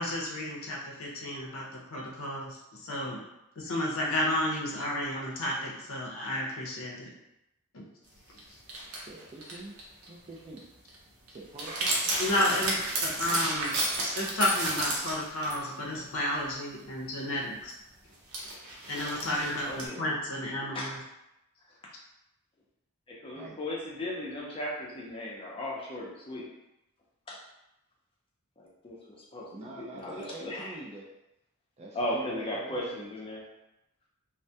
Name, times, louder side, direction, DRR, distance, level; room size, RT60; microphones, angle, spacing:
voice 1, 0.0-3.2 3.6-7.1 7.7-7.8 12.2-13.8 14.1-17.7 18.9-21.0, left 1 dB, 65° left, -3 dB, 0.6 m, -32 dB
sound 1, 8.4-8.5 8.7-10.1 10.4-10.6 10.9-11.0 11.3-15.6 15.9-16.0 17.7-17.8 18.3-19.9, right 2 dB, 80° right, 0.6 m, -32 dB
voice 2, 9.0-9.8 10.1-10.6 11.3-12.1 19.1-19.6 20.0-20.1 23.3-23.6 29.5-31.1 31.8-33.1, right 2 dB, 30° right, -2 dB, 0.3 m, -45 dB
voice 3, 19.6-20.0 20.7-20.9 23.1-26.5 27.3-27.4 28.6-30.8 31.9-33.5, left 1 dB, 25° left, -4 dB, 0.5 m, -36 dB
2.2 x 2.1 x 2.7 m, 0.88 s
head